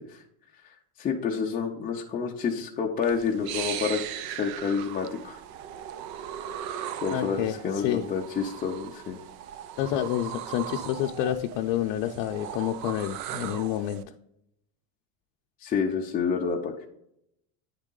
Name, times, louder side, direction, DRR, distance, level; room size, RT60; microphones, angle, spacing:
voice 1, 1.0-5.4 7.0-9.2 15.6-16.9, left 6 dB, 20° left, -2 dB, 0.5 m, -29 dB
sound 1, 3.0-14.0, right 10 dB, 50° right, 0.5 m, -38 dB
voice 2, 7.1-8.0 9.8-14.0, left 12 dB, 70° left, 2 dB, 0.7 m, -29 dB
9.6 x 3.6 x 3.8 m, 0.78 s
cardioid pair, 145°, 48 cm